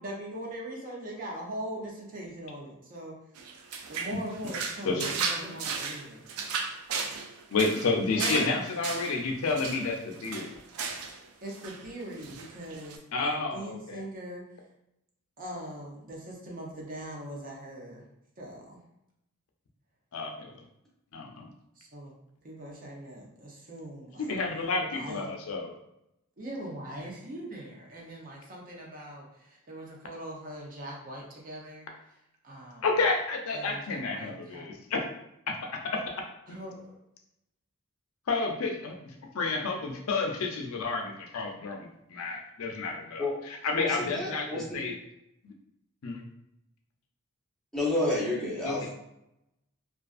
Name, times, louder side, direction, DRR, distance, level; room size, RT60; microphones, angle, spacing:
voice 1, 0.0-3.2 3.9-6.3 8.2-8.5 11.4-14.4 15.4-18.0 18.4-18.8 21.8-22.1 22.4-24.3 24.9-25.2 26.4-31.9 32.4-32.9 33.5-34.7 36.5-37.0, right 1 dB, 40° right, -2 dB, 0.6 m, -41 dB
sound 1, 3.4-11.2 11.5-11.9 12.2-13.0, right 5 dB, 85° right, 0.4 m, -35 dB
voice 2, 7.5-10.5 13.1-14.0 20.1-20.5 21.1-21.5 24.2-25.8 32.8-35.1 35.5-36.0 36.5-36.6 38.3-44.9 45.4-45.5 46.0-46.2 48.6-48.9, left 3 dB, 70° left, 2 dB, 0.4 m, -30 dB
voice 3, 43.7-44.8 47.7-48.9, left 1 dB, ahead, -5 dB, 0.7 m, -30 dB
2.4 x 2.4 x 2.4 m, 0.82 s
head